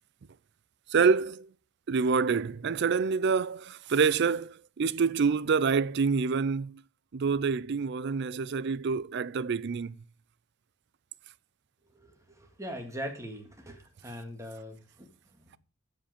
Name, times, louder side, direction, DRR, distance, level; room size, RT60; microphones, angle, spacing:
voice 1, 0.9-1.5 1.9-6.8 7.1-9.9, right 5 dB, 55° right, 0.4 m, -27 dB
voice 2, 11.9-15.6, equal, 15° right, 2.0 m, -42 dB
14.5 x 5.3 x 5.1 m
head